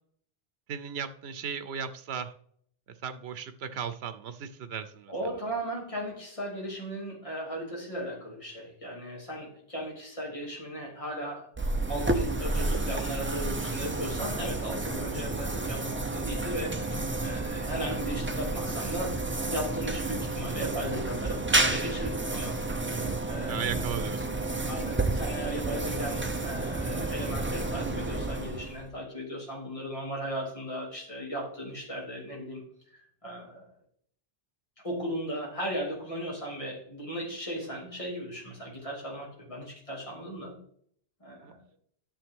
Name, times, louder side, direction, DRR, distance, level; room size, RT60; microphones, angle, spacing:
voice 1, 0.7-2.3 3.0-5.1 23.5-24.3 41.4-41.5, right 7 dB, 85° right, 11 dB, 1.0 m, -36 dB
voice 2, 5.1-11.5 11.9-19.1 19.5-22.6 23.3-23.8 24.6-32.6 32.9-33.7 34.8-40.6 41.2-41.6, equal, 30° left, -3 dB, 2.9 m, -36 dB
sound 1, 11.6-28.9, right 2 dB, 15° right, 0.5 m, -31 dB
10.5 x 7.0 x 3.7 m, 0.62 s
omnidirectional pair, 1.0 m